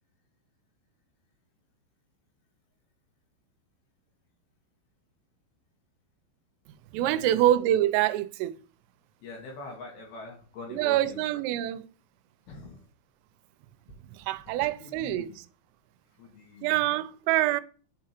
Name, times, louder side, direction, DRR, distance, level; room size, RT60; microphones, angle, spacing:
voice 1, 6.9-8.5 10.7-11.9 14.1-15.3 16.6-17.6, right 13 dB, 90° right, 3.2 m, -25 dB
voice 2, 9.2-11.2 12.5-12.8 14.8-15.4 16.2-16.9, left 3 dB, 65° left, 2.8 m, -44 dB
9.6 x 4.8 x 2.9 m
omnidirectional pair, 5.8 m